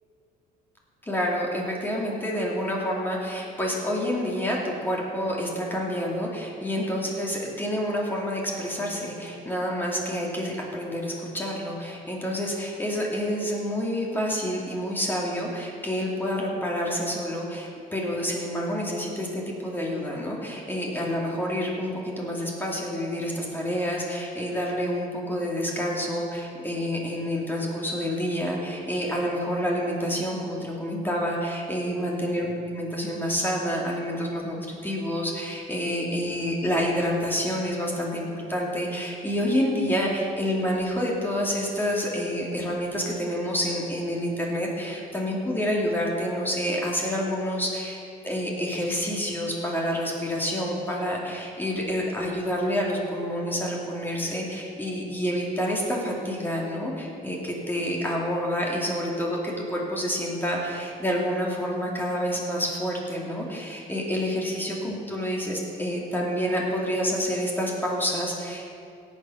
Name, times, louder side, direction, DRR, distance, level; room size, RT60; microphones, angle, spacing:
voice 1, 1.1-48.0 48.2-68.7, equal, 10° left, -3 dB, 2.6 m, -28 dB
17.0 x 7.5 x 5.7 m, 2.5 s
cardioid pair, 110°, 17 cm